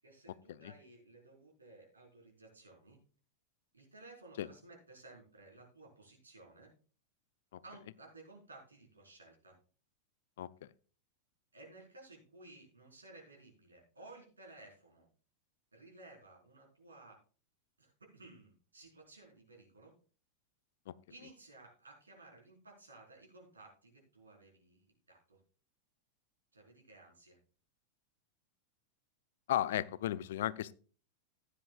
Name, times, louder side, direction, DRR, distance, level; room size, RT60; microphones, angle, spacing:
voice 1, 0.0-3.0 3.7-6.7 7.6-9.5 11.5-15.1 15.7-17.2 17.8-19.9 21.1-25.4 26.5-27.4, right 2 dB, 75° right, -1 dB, 4.3 m, -57 dB
voice 2, 29.5-30.7, left 12 dB, 55° left, 20 dB, 0.4 m, -34 dB
15.0 x 10.0 x 2.4 m, 0.39 s
figure-of-eight pair, 90°, 0 cm